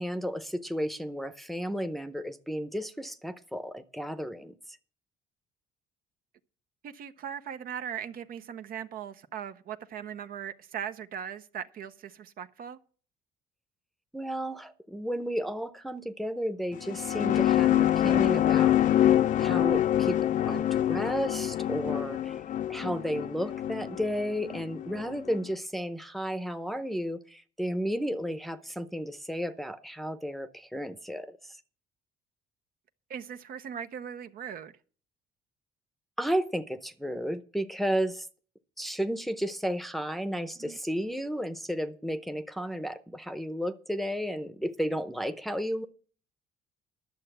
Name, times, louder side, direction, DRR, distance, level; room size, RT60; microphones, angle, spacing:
voice 1, 0.0-4.5 14.1-18.8 19.4-20.2 20.5-22.4 22.7-31.4 36.2-38.3 38.8-45.8, equal, ahead, 0.8 m, -33 dB
voice 2, 6.8-12.8 33.1-34.7 40.6-40.8, right 8 dB, 60° right, 0.8 m, -39 dB
sound 1, 16.7-25.4, left 12 dB, 50° left, 0.5 m, -26 dB
11.5 x 6.8 x 7.9 m
cardioid pair, 110°, 17 cm